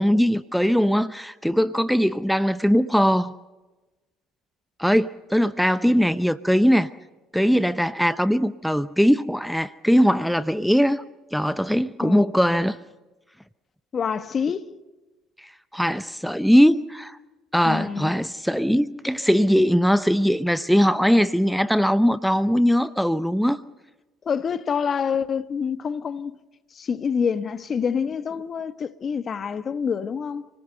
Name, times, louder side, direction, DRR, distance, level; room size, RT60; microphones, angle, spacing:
voice 1, 0.0-3.3 4.8-6.9 7.3-11.0 11.3-12.8 15.4-17.2 17.5-23.6, equal, ahead, 0.8 m, -20 dB
voice 2, 12.0-12.3 13.9-14.7 17.6-18.1 24.2-26.4 26.7-30.5, left 6 dB, 40° left, 1.3 m, -27 dB
29.5 x 19.0 x 6.7 m
hypercardioid pair, 60°, 0 cm